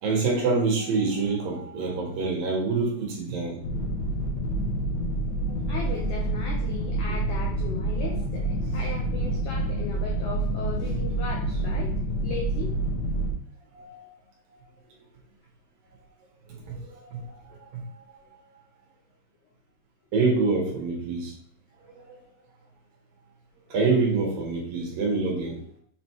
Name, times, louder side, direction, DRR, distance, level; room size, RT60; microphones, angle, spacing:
voice 1, 0.0-3.6 5.5-5.6 13.7-14.0 16.5-18.0 20.1-21.3 21.9-22.2 23.7-25.6, right 4 dB, 60° right, -2 dB, 3.2 m, -26 dB
sound 1, 3.6-13.3, right 2 dB, 60° left, 2.0 m, -28 dB
voice 2, 5.7-11.9 12.2-12.8 23.7-23.8, left 5 dB, 85° left, -2 dB, 1.7 m, -37 dB
7.4 x 4.1 x 4.6 m, 0.64 s
omnidirectional pair, 5.1 m